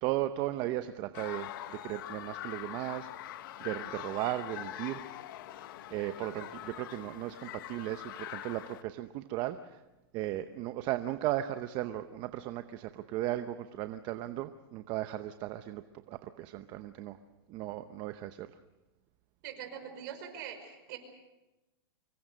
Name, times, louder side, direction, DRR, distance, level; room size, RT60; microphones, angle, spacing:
voice 1, 0.0-5.1 5.9-9.8 10.1-17.2 17.5-18.5, right 14 dB, 35° right, 10 dB, 0.8 m, -36 dB
sound 1, 1.1-8.8, left 13 dB, 55° left, 1.3 m, -43 dB
voice 2, 19.4-21.0, right 9 dB, 55° right, 6 dB, 5.4 m, -43 dB
25.0 x 22.5 x 6.5 m, 1.0 s
supercardioid pair, 150°, 13 cm